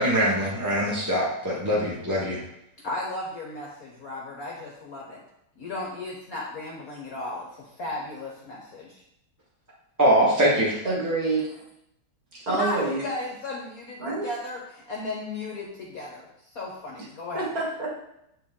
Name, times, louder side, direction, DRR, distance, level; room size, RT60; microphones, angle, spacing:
voice 1, 0.0-2.4 10.0-10.7, equal, 10° right, -7 dB, 0.9 m, -22 dB
voice 2, 2.8-5.2 5.6-9.0 12.5-17.5, left 2 dB, 55° left, -2 dB, 1.1 m, -35 dB
voice 3, 10.8-11.6 12.3-13.0 14.0-14.3 17.3-17.9, right 3 dB, 45° right, -4 dB, 2.1 m, -27 dB
7.6 x 4.5 x 3.7 m, 0.80 s
omnidirectional pair, 2.4 m